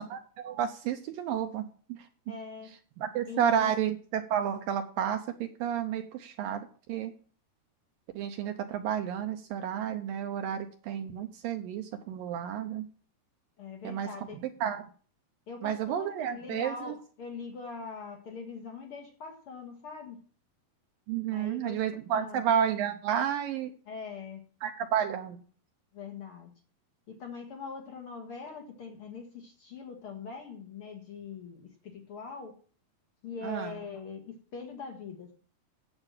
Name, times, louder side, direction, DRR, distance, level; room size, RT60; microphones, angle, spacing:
voice 1, 0.1-2.1 3.0-6.6 6.9-7.1 8.2-12.9 13.8-14.1 14.6-14.8 15.6-16.9 21.1-23.7 24.6-25.4 33.4-33.8, right 9 dB, 75° right, 6 dB, 2.2 m, -31 dB
voice 2, 2.3-2.7 3.3-3.7 13.6-14.4 15.5-20.2 21.3-21.8 22.1-22.4 23.9-24.4 25.9-26.5 27.1-32.6 33.2-35.3, left 5 dB, 60° left, 4 dB, 1.4 m, -42 dB
8.9 x 8.0 x 7.3 m, 0.43 s
omnidirectional pair, 4.6 m